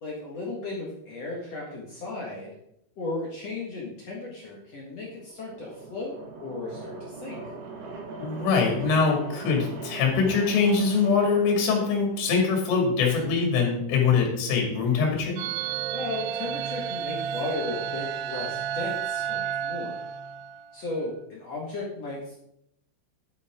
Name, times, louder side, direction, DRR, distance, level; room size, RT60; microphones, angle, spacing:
voice 1, 0.0-2.5 3.0-7.5 15.9-20.0 20.7-22.4, left 2 dB, 60° left, -4 dB, 1.7 m, -35 dB
sound 1, 4.9-12.8, right 3 dB, 60° right, 3.3 m, -41 dB
voice 2, 8.2-15.4, left 5 dB, 75° left, 0 dB, 4.9 m, -23 dB
sound 2, 15.4-20.8, right 9 dB, 80° right, 3.1 m, -31 dB
11.5 x 8.4 x 3.7 m, 0.77 s
omnidirectional pair, 5.8 m